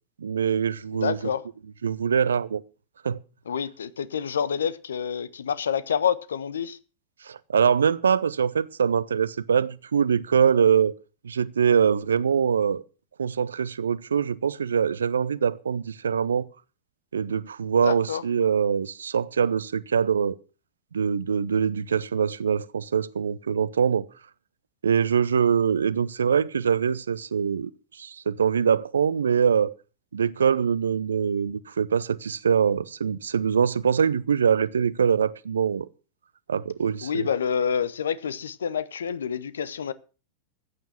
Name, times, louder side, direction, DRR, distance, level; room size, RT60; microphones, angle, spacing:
voice 1, 0.2-1.2 1.8-2.6 3.0-3.2 7.3-10.9 11.2-12.8 13.2-16.5 17.1-20.4 20.9-24.1 24.8-27.7 28.0-29.7 30.1-35.9 36.5-37.3, right 7 dB, 70° right, 0.7 m, -23 dB
voice 2, 0.9-1.4 3.5-6.8 17.7-18.2 37.0-39.9, left 7 dB, 65° left, 0.9 m, -28 dB
14.5 x 9.3 x 5.9 m
figure-of-eight pair, 90°, 0 cm